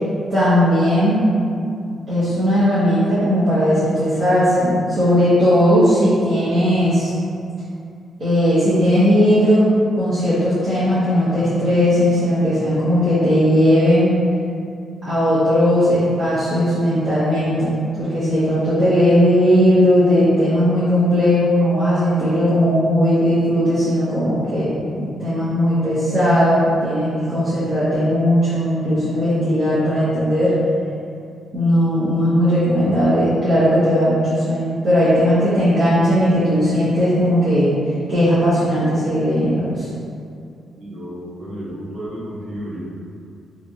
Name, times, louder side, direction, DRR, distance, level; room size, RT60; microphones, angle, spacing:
voice 1, 0.3-1.2 2.1-7.1 8.2-9.6 9.9-14.1 15.1-17.8 18.1-24.7 24.9-30.5 31.5-37.7 38.1-39.9, equal, 45° right, -15 dB, 1.1 m, -17 dB
voice 2, 40.7-42.8, equal, 85° right, -8 dB, 1.1 m, -32 dB
3.3 x 2.9 x 2.5 m, 2.4 s
cardioid pair, 125°, 0 cm